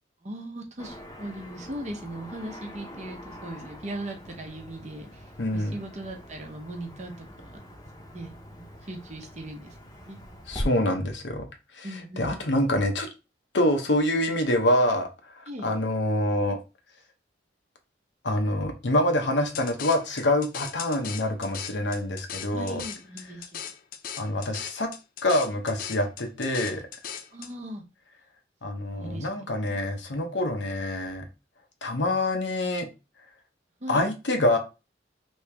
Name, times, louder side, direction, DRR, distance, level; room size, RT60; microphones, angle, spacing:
voice 1, 0.2-5.2 5.5-7.3 8.0-10.2 11.8-12.3 15.5-15.7 22.5-23.7 27.3-27.8 28.9-29.3 29.6-29.8 33.8-34.0, right 1 dB, 40° right, 2 dB, 0.8 m, -39 dB
Car passing by / Traffic noise roadway noise, 0.8-10.7, equal, 20° left, 0.8 m, -42 dB
voice 2, 5.4-5.8 10.5-11.5 11.7-11.9 12.2-13.1 13.5-15.1 15.4-16.6 18.2-22.8 24.2-24.9 25.2-26.8 28.6-31.3 31.8-32.9 33.9-34.6, left 1 dB, 75° left, 4 dB, 0.8 m, -26 dB
sound 1, 19.5-27.5, left 8 dB, 50° left, 0.4 m, -39 dB
3.1 x 2.8 x 3.3 m, 0.28 s
head